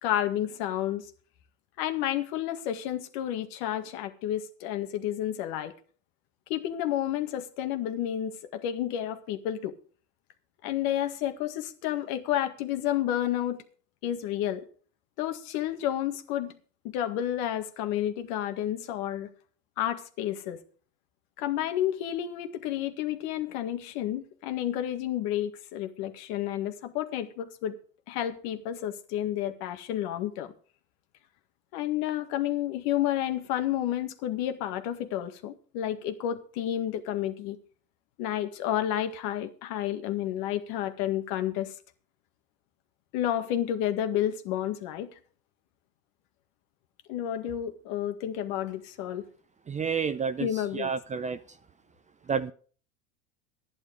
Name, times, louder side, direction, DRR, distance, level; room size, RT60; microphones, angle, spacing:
voice 1, 0.0-1.1 1.8-5.7 6.5-9.7 10.6-13.6 14.0-14.7 15.2-16.6 16.8-19.3 19.8-20.6 21.4-27.8 28.1-30.5 31.7-37.6 38.2-41.7 43.1-45.1 47.1-49.3 50.4-50.9, left 11 dB, 60° left, 1.9 m, -30 dB
voice 2, 49.7-50.5 50.7-51.4 52.3-52.5, right 6 dB, 20° right, 0.6 m, -29 dB
12.5 x 10.5 x 5.2 m
hypercardioid pair, 105°, 41 cm